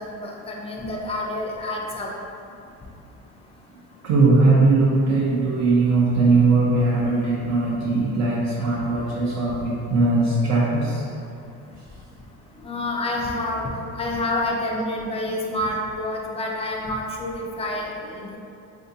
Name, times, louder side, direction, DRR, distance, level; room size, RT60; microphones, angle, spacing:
voice 1, 0.0-2.1 12.6-18.4, left 1 dB, 20° left, -1 dB, 0.4 m, -28 dB
voice 2, 4.0-11.1, right 3 dB, 55° right, -5 dB, 0.6 m, -19 dB
3.5 x 2.7 x 2.7 m, 2.5 s
cardioid pair, 115°, 34 cm